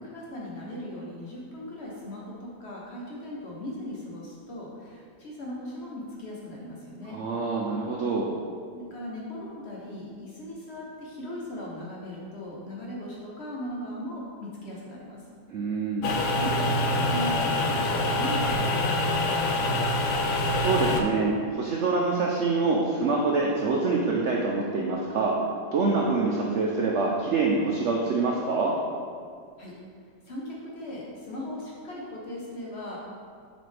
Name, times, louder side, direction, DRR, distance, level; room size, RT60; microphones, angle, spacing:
voice 1, 0.0-7.2 8.7-15.2 16.3-19.8 29.6-29.7 30.2-33.0, left 1 dB, 50° left, -4 dB, 0.9 m, -38 dB
voice 2, 7.1-8.3 15.5-16.1 20.6-25.4 25.7-28.7, right 3 dB, 90° right, -2 dB, 0.6 m, -25 dB
sound 1, 16.0-21.0, left 1 dB, 85° left, 1.3 m, -25 dB
6.7 x 4.2 x 3.3 m, 2.1 s
omnidirectional pair, 1.9 m